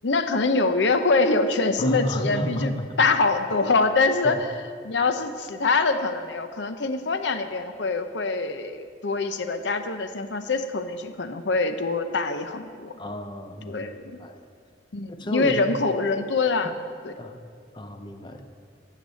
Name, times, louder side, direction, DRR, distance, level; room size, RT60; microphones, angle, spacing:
voice 1, 0.0-4.5 4.8-12.9 13.7-14.2 14.9-16.7 17.0-17.1, left 3 dB, 75° left, 8 dB, 0.7 m, -24 dB
voice 2, 1.8-2.9 4.2-4.4 13.0-13.9 14.2-14.4 15.1-15.8 17.2-17.4 17.7-18.5, equal, 25° left, 6 dB, 0.8 m, -31 dB
9.9 x 6.0 x 8.2 m, 2.1 s
head